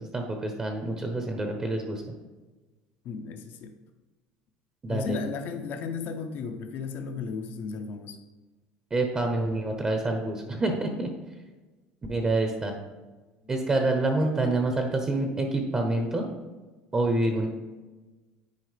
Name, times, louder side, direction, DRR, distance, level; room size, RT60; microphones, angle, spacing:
voice 1, 0.0-2.0 4.8-5.2 8.9-11.1 12.1-12.7 13.5-16.2 16.9-17.5, right 2 dB, 20° right, 3 dB, 0.8 m, -27 dB
voice 2, 3.0-3.7 4.9-8.2, left 5 dB, 50° left, 6 dB, 0.8 m, -34 dB
9.5 x 4.8 x 3.3 m, 1.2 s
cardioid pair, 145°, 4 cm